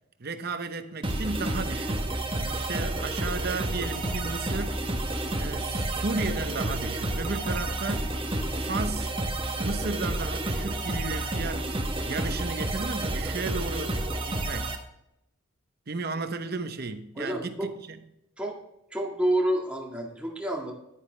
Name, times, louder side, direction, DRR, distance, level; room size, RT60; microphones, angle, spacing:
voice 1, 0.2-2.1 2.4-4.8 5.4-8.1 8.6-9.1 9.6-11.7 12.0-14.0 14.2-14.8 15.9-18.0, right 3 dB, 50° right, 0.8 m, -34 dB
sound 1, 1.0-14.8, right 1 dB, 25° right, 1.0 m, -30 dB
voice 2, 17.2-17.7 18.4-18.6 18.9-20.7, right 1 dB, 5° right, 1.8 m, -28 dB
10.5 x 9.8 x 3.2 m
head